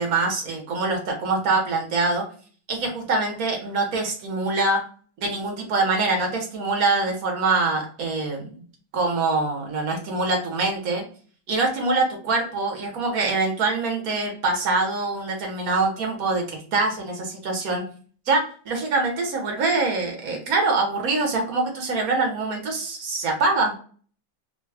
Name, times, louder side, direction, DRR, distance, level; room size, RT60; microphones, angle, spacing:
voice 1, 0.0-2.2 2.7-4.8 5.2-8.5 8.9-11.0 11.5-17.8 18.3-23.8, right 3 dB, 55° right, 1 dB, 1.2 m, -24 dB
3.3 x 2.2 x 3.3 m, 0.43 s
omnidirectional pair, 2.2 m